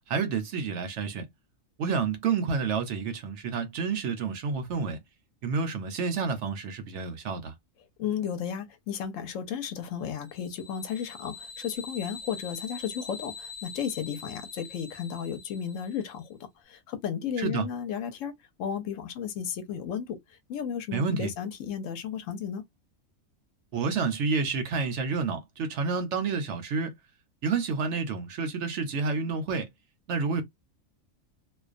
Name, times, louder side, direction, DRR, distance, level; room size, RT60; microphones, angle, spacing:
voice 1, 0.1-1.3 1.8-5.0 5.4-7.5 17.4-17.7 20.9-21.3 23.7-26.9 27.4-29.7 30.1-30.4, right 5 dB, 65° right, 0.8 m, -29 dB
voice 2, 8.0-16.4 16.6-22.6, left 8 dB, 75° left, 0.9 m, -34 dB
sound 1, 10.3-16.2, left 5 dB, 25° left, 0.3 m, -44 dB
2.4 x 2.2 x 2.4 m
omnidirectional pair, 1.4 m